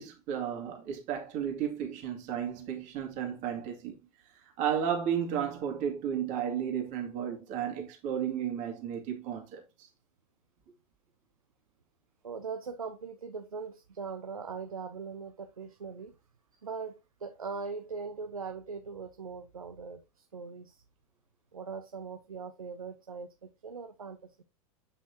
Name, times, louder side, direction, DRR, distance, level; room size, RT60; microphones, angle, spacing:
voice 1, 0.0-4.0 4.4-9.9, right 8 dB, 45° right, 2.4 m, -33 dB
voice 2, 12.2-16.1 16.6-20.8 21.5-24.4, right 5 dB, 80° right, 0.7 m, -41 dB
8.5 x 5.5 x 2.8 m
figure-of-eight pair, 85°, 18 cm